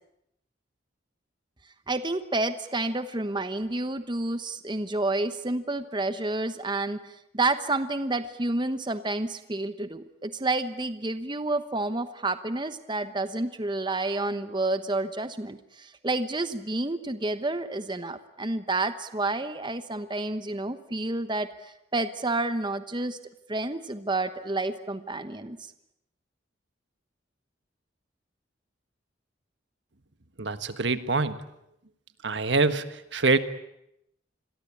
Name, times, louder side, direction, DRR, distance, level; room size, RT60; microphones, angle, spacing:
voice 1, 1.9-23.2 23.5-25.6, right 2 dB, 25° right, 10 dB, 1.1 m, -29 dB
voice 2, 30.4-31.4 32.2-32.8 33.1-33.4, right 3 dB, 70° right, 11 dB, 1.5 m, -24 dB
27.5 x 22.0 x 8.6 m, 0.80 s
head